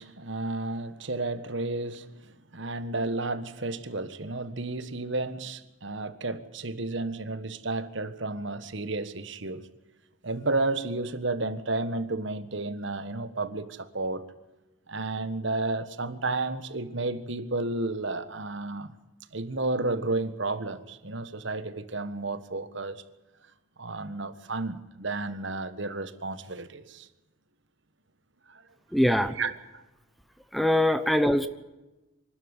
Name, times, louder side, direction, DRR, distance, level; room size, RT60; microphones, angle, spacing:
voice 1, 0.0-9.7 10.2-14.3 14.9-18.9 19.3-23.0 23.8-27.1 28.5-28.6 29.4-29.8, right 2 dB, 60° right, 1.6 m, -32 dB
voice 2, 28.9-29.3 30.5-31.5, left 1 dB, ahead, 0.9 m, -22 dB
25.0 x 12.5 x 9.9 m
head